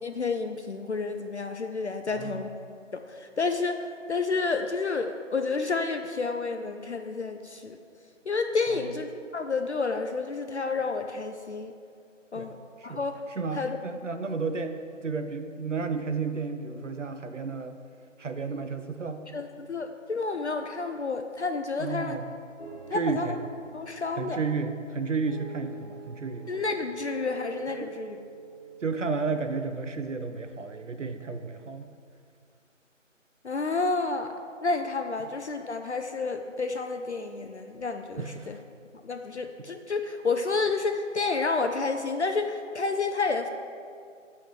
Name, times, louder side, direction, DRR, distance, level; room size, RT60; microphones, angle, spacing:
voice 1, 0.0-2.5 2.9-3.8 4.1-7.8 8.3-11.7 12.3-12.6 12.8-13.2 13.5-13.8 19.3-22.2 22.9-23.4 23.7-24.4 26.5-28.2 33.4-34.3 34.6-38.6 39.0-43.5, left 4 dB, 60° left, 6 dB, 0.5 m, -30 dB
voice 2, 2.1-2.4 8.7-8.9 12.3-12.5 12.8-13.0 13.3-17.8 18.2-19.2 21.8-22.3 22.9-23.4 24.2-26.5 27.8-27.9 28.8-31.9 38.2-38.5 39.6-39.7, right 4 dB, 70° right, 7 dB, 0.6 m, -32 dB
sound 1, 22.6-31.3, right 6 dB, 15° right, 1.8 m, -46 dB
7.1 x 4.2 x 6.5 m, 2.3 s
figure-of-eight pair, 165°, 38 cm